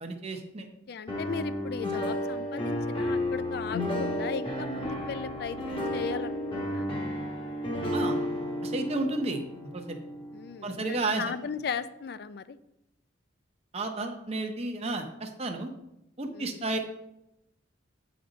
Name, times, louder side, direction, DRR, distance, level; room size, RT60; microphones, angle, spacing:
voice 1, 0.0-0.7 7.9-8.2 8.6-10.0 10.6-11.3 13.7-15.7 16.2-16.9, right 2 dB, 30° right, 4 dB, 0.7 m, -32 dB
voice 2, 0.9-6.9 10.3-12.6 16.3-16.6, left 6 dB, 55° left, 14 dB, 0.4 m, -37 dB
sound 1, 1.1-11.0, left 1 dB, 25° left, 1.1 m, -32 dB
8.4 x 5.1 x 3.9 m, 0.87 s
head